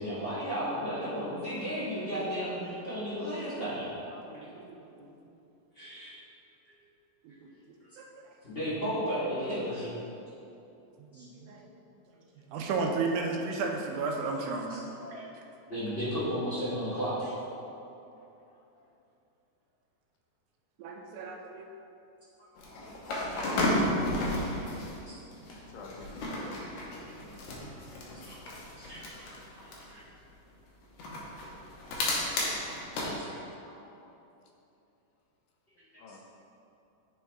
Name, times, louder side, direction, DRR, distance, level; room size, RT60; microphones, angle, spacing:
voice 1, 0.0-3.9 4.3-4.4 5.7-6.1 8.4-9.9 11.1-11.2 14.7-14.8 15.1-15.2 15.7-17.3 22.7-22.8 23.3-23.4 23.8-24.0 25.1-25.2 26.5-26.7 27.2-27.3 28.2-28.4 28.8-29.3 29.7-30.0 32.0-33.4 33.6-33.9 36.1-36.2, equal, 45° left, -12 dB, 0.7 m, -35 dB
voice 2, 4.1-5.1 7.2-7.3 8.0-8.1 11.1-11.7 12.5-14.9 20.8-21.7, right 4 dB, 75° right, 1 dB, 2.0 m, -33 dB
sound 1, 22.6-25.0 25.3-29.9 31.0-33.1, left 1 dB, 70° left, 2.2 m, -33 dB
voice 3, 25.5-26.6 36.0-36.2, left 2 dB, 85° left, 0 dB, 2.4 m, -47 dB
9.6 x 4.6 x 3.4 m, 2.8 s
omnidirectional pair, 3.9 m